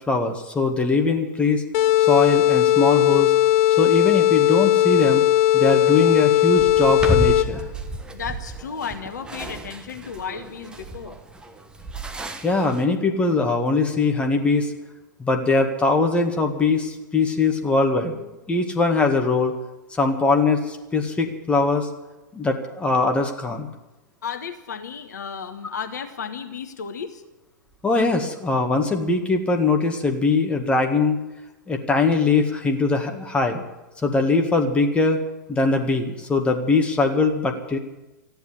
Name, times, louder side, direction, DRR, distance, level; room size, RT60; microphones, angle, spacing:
voice 1, 0.1-1.6 2.0-3.3 3.8-5.2 5.5-7.6 12.4-14.7 15.2-19.5 19.9-21.9 22.3-23.7 27.8-31.2 31.7-33.6 34.0-35.2 35.5-37.8, left 3 dB, 10° left, 3 dB, 1.9 m, -21 dB
sound 1, 1.7-7.7, left 13 dB, 40° left, 0.8 m, -18 dB
sound 2, 6.6-12.8, right 1 dB, 10° right, 1.3 m, -31 dB
voice 2, 8.1-11.2 24.2-27.2, left 6 dB, 65° left, 7 dB, 1.5 m, -33 dB
14.0 x 10.5 x 9.9 m, 1.0 s
figure-of-eight pair, 105°, 10 cm